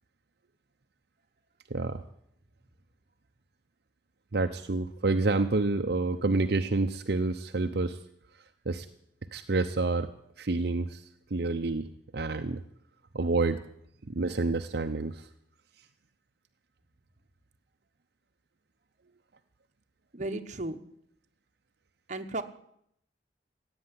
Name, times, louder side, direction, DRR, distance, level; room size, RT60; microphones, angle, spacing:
voice 1, 1.7-2.0 4.3-8.0 8.3-8.9 9.3-10.1 10.4-11.0 11.3-12.6 13.1-13.6 14.1-15.3, right 3 dB, 65° right, 6 dB, 0.8 m, -28 dB
voice 2, 20.1-20.8 22.1-22.4, right 2 dB, 45° right, 7 dB, 1.2 m, -34 dB
16.0 x 8.9 x 9.7 m, 0.73 s
head